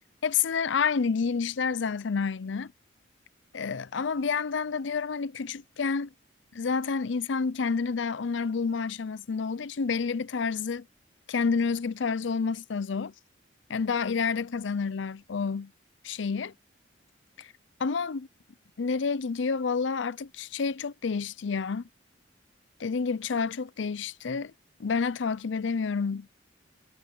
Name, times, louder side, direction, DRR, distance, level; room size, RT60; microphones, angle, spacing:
voice 1, 0.2-2.7 3.5-6.1 6.5-10.9 11.3-13.1 13.7-15.7 16.0-16.5 17.4-17.5 17.8-18.3 18.8-21.8 22.8-24.5 24.8-26.3, left 5 dB, 75° left, 0.5 m, -29 dB
head